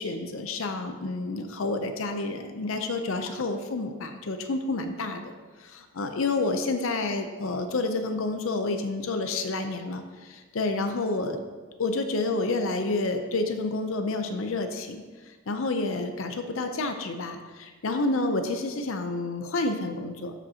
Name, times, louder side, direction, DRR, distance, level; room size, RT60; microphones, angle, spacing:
voice 1, 0.0-5.2 5.7-10.0 10.3-11.4 11.8-15.0 15.5-20.3, left 2 dB, 75° left, 6 dB, 0.6 m, -29 dB
13.0 x 5.2 x 2.8 m, 1.4 s
head